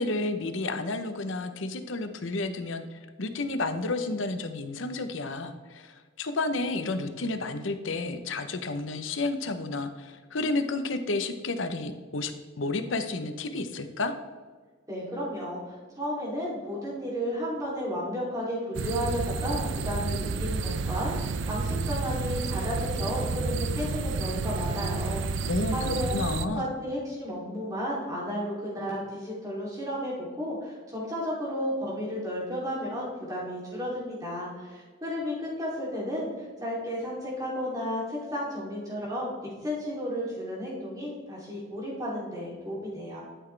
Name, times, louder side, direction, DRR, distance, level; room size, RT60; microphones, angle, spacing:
voice 1, 0.0-12.3 12.6-14.1 25.5-26.7, left 2 dB, 75° left, 8 dB, 0.8 m, -31 dB
voice 2, 14.9-26.2 26.6-39.3 39.6-43.2, equal, 15° right, -6 dB, 2.8 m, -33 dB
sound 1, 18.7-26.5, right 4 dB, 70° right, 0.5 m, -30 dB
12.0 x 6.0 x 3.3 m, 1.5 s
head